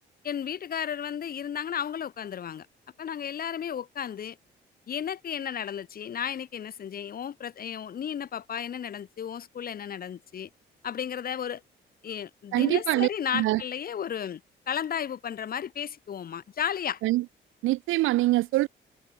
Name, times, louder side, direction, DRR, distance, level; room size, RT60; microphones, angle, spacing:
voice 1, 0.2-2.7 3.0-4.4 4.9-10.5 10.8-11.6 12.0-14.4 14.7-17.0, left 8 dB, 50° left, 1.0 m, -33 dB
voice 2, 12.5-13.1 13.3-13.6 17.0-17.2 17.6-18.7, right 18 dB, 85° right, 0.5 m, -24 dB
cardioid pair, 90°, 20 cm